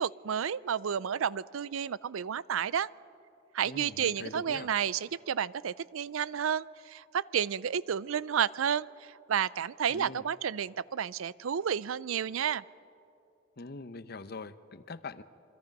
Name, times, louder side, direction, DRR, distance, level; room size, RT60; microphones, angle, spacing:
voice 1, 0.0-2.9 3.5-8.9 9.3-12.6, right 8 dB, 85° right, 20 dB, 0.4 m, -31 dB
voice 2, 3.7-4.7 9.9-10.2 13.6-15.2, left 3 dB, 50° left, 13 dB, 0.7 m, -43 dB
26.5 x 24.0 x 5.3 m, 2.6 s
head